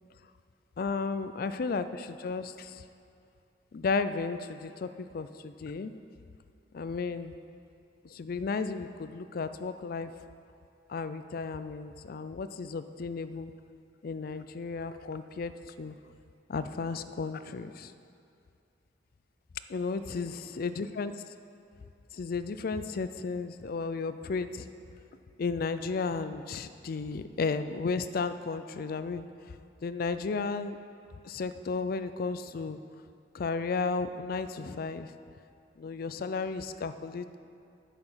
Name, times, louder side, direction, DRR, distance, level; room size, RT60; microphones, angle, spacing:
voice 1, 0.8-2.8 3.7-5.9 6.7-7.3 8.1-10.1 10.9-13.5 14.0-15.5 15.8-16.0 16.5-17.9 19.7-21.1 22.1-24.7 25.4-29.2 29.8-30.8 31.2-32.8 33.3-35.1 35.8-37.4, left 4 dB, 55° left, 11 dB, 0.4 m, -33 dB
10.0 x 6.9 x 5.6 m, 2.5 s
head